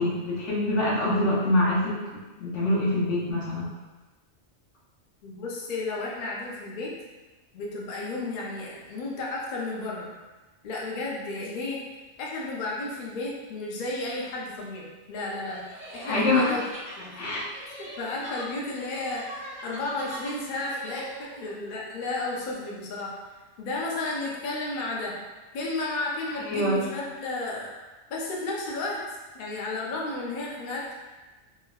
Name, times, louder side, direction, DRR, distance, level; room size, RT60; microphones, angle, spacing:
voice 1, 0.0-2.0 2.4-3.7 16.0-16.6 17.2-17.4 26.5-26.8, left 1 dB, 75° left, -6 dB, 1.1 m, -24 dB
voice 2, 5.2-6.9 7.5-10.1 10.6-11.8 12.2-15.6 15.9-16.6 17.0-17.2 17.8-23.1 23.6-25.2 25.5-27.7 28.1-29.0 29.3-30.9, left 2 dB, 55° left, -3 dB, 0.6 m, -33 dB
sound 1, 15.5-21.5, right 1 dB, 10° right, 0.6 m, -42 dB
3.4 x 2.1 x 2.2 m, 1.2 s
omnidirectional pair, 1.2 m